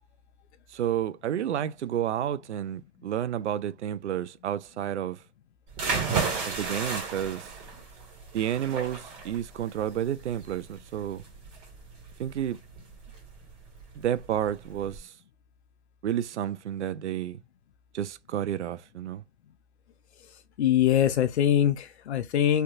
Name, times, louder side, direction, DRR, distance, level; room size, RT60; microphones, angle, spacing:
voice 1, 0.7-5.2 6.5-7.5 8.3-11.2 12.2-12.6 14.0-15.1 16.0-17.4 17.9-19.2, right 10 dB, 85° right, 0.5 m, -30 dB
sound 1, 5.7-15.0, right 5 dB, 20° right, 1.5 m, -34 dB
voice 2, 20.6-22.6, left 10 dB, 75° left, 0.5 m, -23 dB
3.3 x 2.8 x 2.4 m
hypercardioid pair, 150°, 34 cm